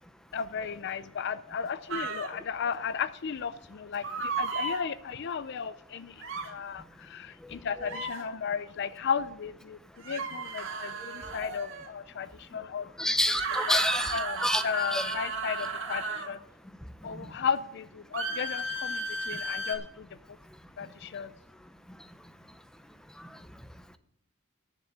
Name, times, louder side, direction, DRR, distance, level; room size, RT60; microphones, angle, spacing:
voice 1, 0.3-9.8 10.0-13.1 13.7-13.8 14.1-14.4 14.6-16.4 17.0-20.1 20.8-21.3, left 6 dB, 50° left, 0.4 m, -34 dB
sound 1, 1.9-2.3 4.0-4.8 6.2-6.5 7.8-8.2 10.0-11.9 13.2-16.3 18.1-19.8, right 3 dB, 60° right, 1.9 m, -34 dB
voice 2, 13.0-14.6 14.9-15.1 17.1-17.3 23.2-23.4, left 1 dB, 5° left, 0.6 m, -29 dB
10.0 x 7.5 x 7.3 m
head